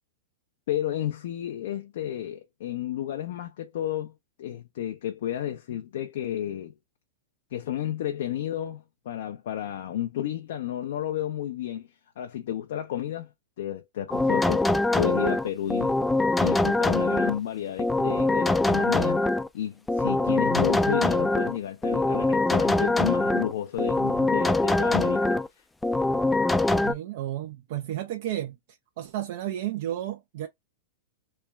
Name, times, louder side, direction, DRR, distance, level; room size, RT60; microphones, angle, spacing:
voice 1, 0.7-4.1 4.4-6.7 7.5-11.9 12.2-13.3 13.6-14.7 14.9-15.9 16.4-19.2 19.5-25.4, left 11 dB, 70° left, 0.5 m, -31 dB
sound 1, 14.1-17.4 17.8-19.5 19.9-21.6 21.8-23.5 23.8-25.5 25.8-26.9, left 2 dB, 10° left, 0.3 m, -23 dB
voice 2, 26.8-28.6 29.0-30.5, right 12 dB, 60° right, 0.4 m, -32 dB
3.1 x 2.2 x 3.3 m
hypercardioid pair, 110°, 0 cm